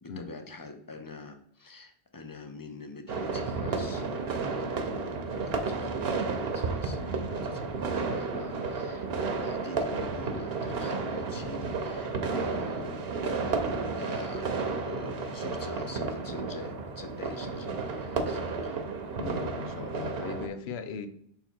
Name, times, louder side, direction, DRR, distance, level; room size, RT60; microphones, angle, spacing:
voice 1, 0.0-14.5 14.8-18.8, left 3 dB, 25° left, 6 dB, 0.5 m, -45 dB
sound 1, 3.1-20.5, right 4 dB, 70° right, 1.0 m, -32 dB
voice 2, 19.2-21.1, left 6 dB, 90° left, 10 dB, 0.9 m, -38 dB
5.6 x 3.8 x 4.5 m, 0.69 s
omnidirectional pair, 1.1 m